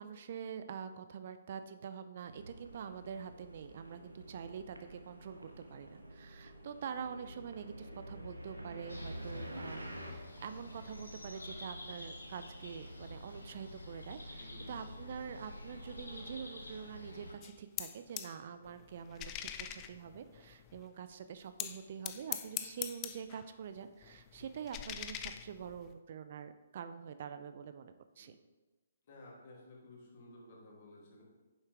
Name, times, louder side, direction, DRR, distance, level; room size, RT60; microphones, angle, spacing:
voice 1, 0.0-9.8 10.1-28.4, right 7 dB, 50° right, 10 dB, 0.5 m, -46 dB
sound 1, 2.2-10.1, equal, 90° right, 1.2 m, -49 dB
sound 2, 8.9-17.3, left 1 dB, 85° left, 1.6 m, -48 dB
voice 2, 14.3-14.9 28.2-28.3 29.1-31.2, left 2 dB, 45° left, -3 dB, 2.8 m, -55 dB
sound 3, 17.4-18.4 18.6-20.9 21.6-23.5 23.8-25.9, left 12 dB, 25° left, 0.5 m, -43 dB
9.8 x 7.2 x 3.4 m, 1.2 s
figure-of-eight pair, 130°, 0 cm